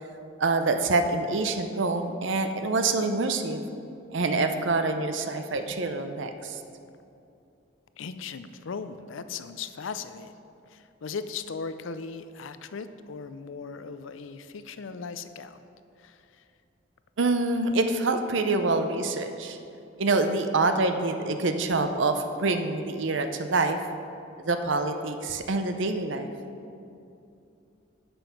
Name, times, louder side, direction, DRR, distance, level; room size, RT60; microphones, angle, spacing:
voice 1, 0.4-3.6 4.1-6.6 17.2-19.6 20.0-23.8 24.4-26.3, right 3 dB, 70° right, 7 dB, 0.6 m, -26 dB
voice 2, 8.0-10.3 10.6-15.6 16.0-16.4, left 5 dB, 80° left, 11 dB, 0.5 m, -38 dB
9.0 x 6.9 x 5.9 m, 2.7 s
head